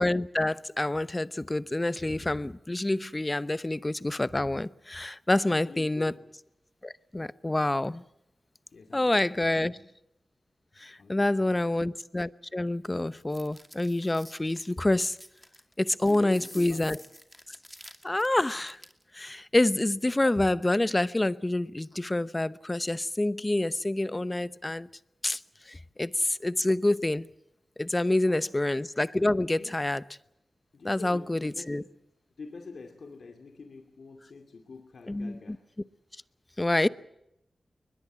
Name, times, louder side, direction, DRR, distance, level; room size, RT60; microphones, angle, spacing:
voice 1, 0.0-6.1 6.8-8.0 8.9-9.8 10.8-15.2 15.8-17.0 18.0-18.8 19.1-24.9 25.2-25.4 25.7-27.3 27.8-30.0 30.8-31.8 35.1-35.6 36.6-36.9, left 1 dB, 25° left, 0.9 m, -27 dB
voice 2, 5.3-6.3 8.7-9.9 11.0-11.9 16.1-17.1 28.3-28.6 29.5-29.8 30.7-31.9 32.4-35.6, left 4 dB, 75° left, 2.4 m, -46 dB
sound 1, 13.1-19.0, equal, 5° left, 2.4 m, -50 dB
22.0 x 21.0 x 7.5 m
cardioid pair, 45°, 0 cm